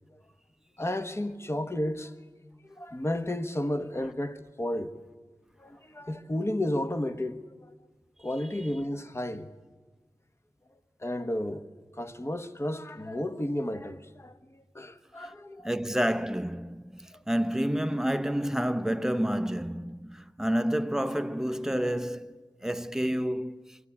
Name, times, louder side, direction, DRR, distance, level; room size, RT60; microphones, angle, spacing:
voice 1, 0.8-2.1 2.6-4.9 5.6-7.4 8.2-9.5 11.0-11.7 12.0-15.7 17.1-17.2, left 1 dB, 30° left, 1.2 m, -32 dB
voice 2, 15.6-23.8, equal, 5° right, 0.8 m, -29 dB
23.5 x 16.0 x 9.8 m
cardioid pair, 50°, 10 cm